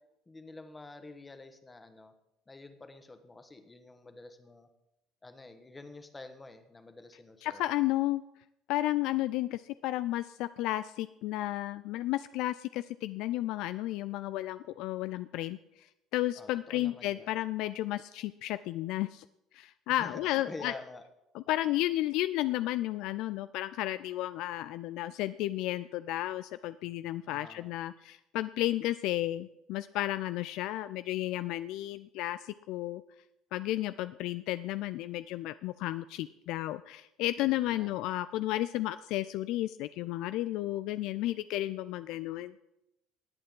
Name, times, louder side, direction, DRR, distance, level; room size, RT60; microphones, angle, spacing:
voice 1, 0.3-2.1 2.5-4.7 5.2-7.6 16.3-17.3 19.9-21.0 27.3-27.7 37.6-38.1, left 2 dB, 20° left, 8 dB, 1.5 m, -48 dB
voice 2, 7.4-8.2 8.7-19.2 19.5-20.7 21.3-33.0 33.5-42.5, left 15 dB, 65° left, 14 dB, 0.3 m, -33 dB
18.5 x 8.6 x 3.8 m, 0.89 s
hypercardioid pair, 60°, 0 cm